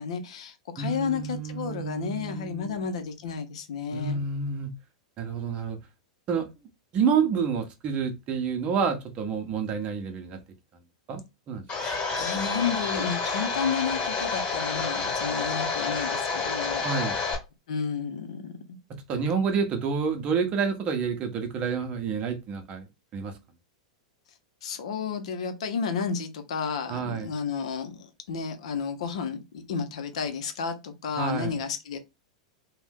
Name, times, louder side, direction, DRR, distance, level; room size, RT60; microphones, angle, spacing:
voice 1, 0.0-4.2 11.8-16.8 17.7-18.8 24.6-32.0, left 6 dB, 65° left, 0.6 m, -32 dB
voice 2, 0.8-2.9 3.9-4.7 5.2-5.8 6.3-6.5 6.9-10.4 11.1-11.2 11.5-11.6 16.8-17.2 18.9-23.4 26.9-27.3 31.2-31.5, right 6 dB, 35° right, 0.8 m, -29 dB
Domestic sounds home sounds, 11.7-17.4, left 4 dB, 30° left, 1.3 m, -29 dB
2.6 x 2.3 x 3.5 m
figure-of-eight pair, 95°, 4 cm